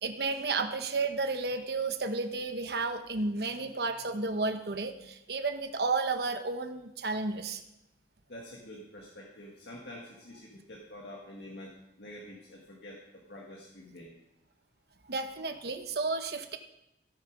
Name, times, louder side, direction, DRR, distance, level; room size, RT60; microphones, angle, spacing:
voice 1, 0.0-7.6 15.1-16.6, right 3 dB, 60° right, 7 dB, 1.0 m, -32 dB
voice 2, 8.3-13.0 13.3-14.1, left 1 dB, 70° left, -2 dB, 1.9 m, -47 dB
16.0 x 6.8 x 5.2 m, 0.86 s
head